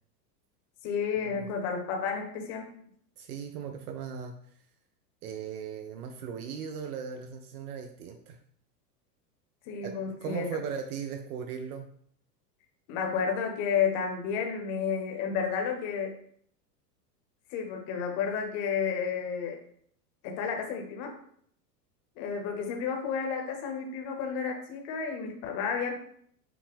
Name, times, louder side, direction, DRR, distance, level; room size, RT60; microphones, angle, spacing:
voice 1, 0.8-2.7 9.7-10.5 12.9-16.2 17.5-19.6 20.2-21.1 22.2-25.9, left 6 dB, 40° left, 3 dB, 0.8 m, -31 dB
voice 2, 3.2-4.3 5.2-8.4 9.8-11.9, right 7 dB, 65° right, 5 dB, 0.6 m, -38 dB
5.8 x 2.1 x 3.5 m, 0.64 s
supercardioid pair, 130°, 49 cm